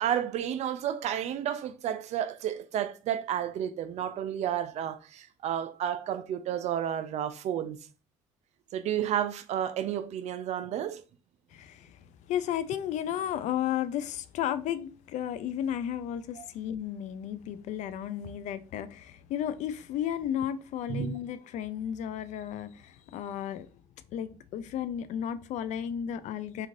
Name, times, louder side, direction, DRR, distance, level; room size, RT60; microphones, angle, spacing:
voice 1, 0.0-7.8 8.7-11.0 16.4-16.5 20.9-21.1, right 10 dB, 60° right, 0.4 m, -31 dB
voice 2, 11.5-23.7 24.1-26.7, left 10 dB, 65° left, 0.4 m, -33 dB
3.1 x 2.4 x 2.5 m
supercardioid pair, 70°, 13 cm